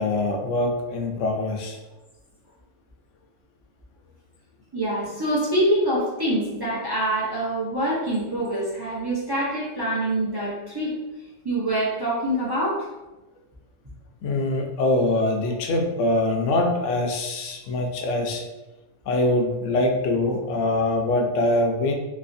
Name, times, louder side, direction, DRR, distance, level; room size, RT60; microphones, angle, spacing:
voice 1, 0.0-1.8 14.2-18.4 19.1-21.9, left 2 dB, 70° left, 2 dB, 0.9 m, -23 dB
voice 2, 4.7-10.9 11.4-12.8, right 1 dB, 30° right, -6 dB, 0.5 m, -25 dB
3.2 x 2.9 x 2.6 m, 1.0 s
omnidirectional pair, 1.4 m